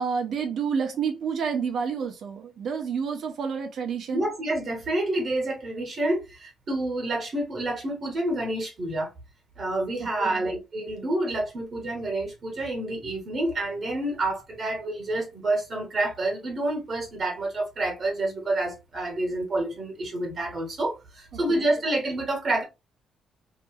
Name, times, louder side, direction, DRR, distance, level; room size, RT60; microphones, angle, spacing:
voice 1, 0.0-4.3 10.0-10.5 21.3-21.6, right 6 dB, 65° right, 0.8 m, -29 dB
voice 2, 4.1-9.1 9.6-22.6, right 2 dB, 45° right, 1.1 m, -28 dB
2.9 x 2.6 x 2.3 m
cardioid pair, 90°, 0 cm